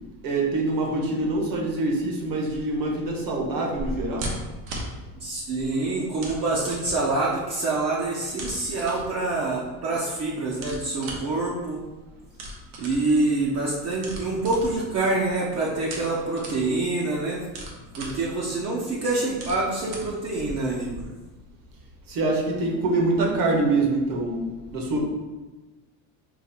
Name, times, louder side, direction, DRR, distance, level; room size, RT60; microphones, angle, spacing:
voice 1, 0.2-4.3 22.1-24.5 24.7-25.0, right 2 dB, 55° right, 0 dB, 1.0 m, -25 dB
sound 1, 2.4-21.0, right 1 dB, 85° right, 1.1 m, -41 dB
voice 2, 5.2-11.8 12.8-17.4 18.0-21.1, right 2 dB, 35° right, -4 dB, 0.6 m, -26 dB
4.0 x 2.5 x 4.3 m, 1.2 s
cardioid pair, 135°, 41 cm